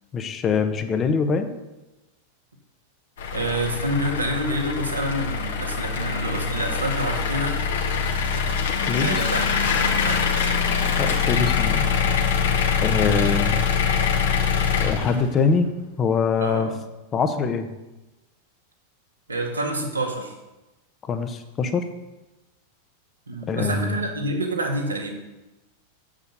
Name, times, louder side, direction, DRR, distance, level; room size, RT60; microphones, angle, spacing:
voice 1, 0.1-1.5 8.8-9.3 11.0-11.9 12.8-13.6 14.8-15.7 16.0-16.7 17.1-17.7 21.0-21.9 23.5-24.0, left 5 dB, 25° left, 8 dB, 1.2 m, -23 dB
sound 1, 3.2-15.5, left 6 dB, 60° left, 1.7 m, -23 dB
voice 2, 3.3-7.6 9.0-9.5 9.7-10.6 13.2-13.4 16.4-16.7 19.3-20.4 23.3-25.1, right 1 dB, 75° right, 1 dB, 2.1 m, -27 dB
8.2 x 7.5 x 6.9 m, 1.0 s
figure-of-eight pair, 90°, 0 cm